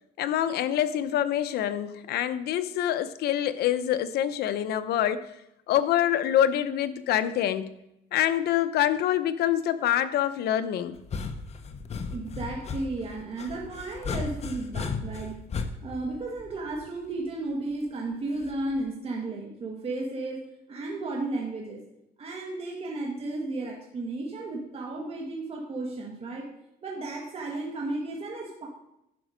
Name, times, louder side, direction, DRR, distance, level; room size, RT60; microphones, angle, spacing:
voice 1, 0.2-5.2 5.7-7.7 8.1-11.0, left 11 dB, 70° left, 11 dB, 0.7 m, -26 dB
sound 1, 10.9-17.0 18.4-18.8, left 4 dB, 40° left, 0.9 m, -35 dB
voice 2, 12.1-15.4 15.8-21.8 22.2-26.5 26.8-28.7, right 2 dB, 35° right, -1 dB, 1.7 m, -34 dB
10.5 x 6.0 x 5.1 m, 0.83 s
cardioid pair, 110°, 17 cm